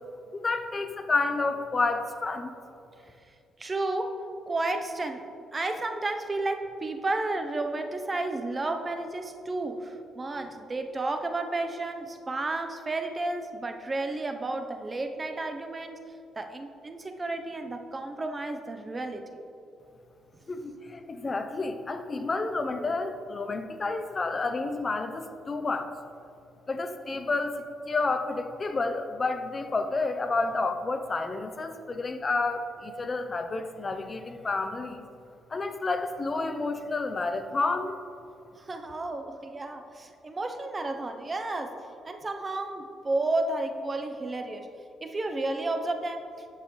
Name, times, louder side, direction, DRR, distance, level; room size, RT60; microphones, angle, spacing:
voice 1, 0.3-2.5 20.5-25.9 26.7-35.1 35.5-38.0, left 3 dB, 30° left, 8 dB, 0.6 m, -30 dB
voice 2, 3.6-4.2 4.5-5.2 5.5-16.0 16.3-19.2 38.6-41.8 42.0-44.7 45.0-46.3, right 2 dB, 25° right, 6 dB, 0.7 m, -32 dB
10.5 x 7.3 x 3.1 m, 2.6 s
cardioid pair, 90°, 0 cm